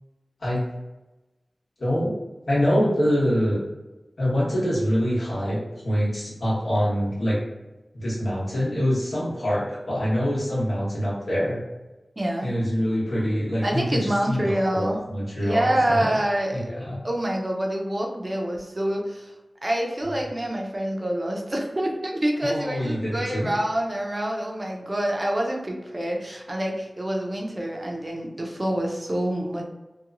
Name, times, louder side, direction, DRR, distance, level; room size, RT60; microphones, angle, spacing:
voice 1, 1.8-2.1 2.5-3.6 4.2-7.4 7.9-11.6 12.4-16.1 16.5-17.0 22.4-23.5, equal, 80° left, -8 dB, 1.3 m, -25 dB
voice 2, 12.2-12.5 13.6-15.0 15.4-16.6 17.0-19.3 19.6-29.6, right 1 dB, 35° right, 0 dB, 0.5 m, -26 dB
2.9 x 2.2 x 2.4 m, 1.1 s
wide cardioid pair, 75°, 0 cm